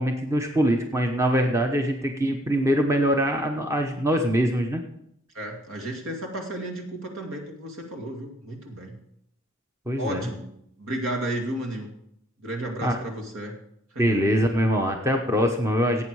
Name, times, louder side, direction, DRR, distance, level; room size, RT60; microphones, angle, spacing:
voice 1, 0.0-4.8 9.9-10.3 12.8-13.0 14.0-16.0, equal, 15° right, 3 dB, 0.9 m, -23 dB
voice 2, 5.3-9.0 10.0-10.5 10.8-11.9 12.4-13.6 13.9-14.2, right 1 dB, 65° right, 2 dB, 2.5 m, -33 dB
17.0 x 8.5 x 4.8 m, 0.75 s
head